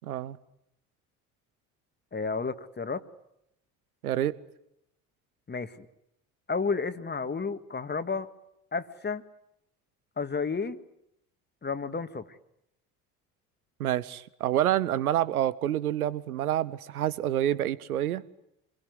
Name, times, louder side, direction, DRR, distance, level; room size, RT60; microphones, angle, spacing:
voice 1, 0.0-0.4 4.0-4.3 13.8-18.2, right 12 dB, 85° right, 18 dB, 1.0 m, -28 dB
voice 2, 2.1-3.0 5.5-5.9 6.5-8.3 8.7-9.2 10.2-10.8 11.6-12.3, left 4 dB, 25° left, 10 dB, 1.9 m, -31 dB
27.0 x 22.0 x 9.5 m, 0.80 s
hypercardioid pair, 60°, 43 cm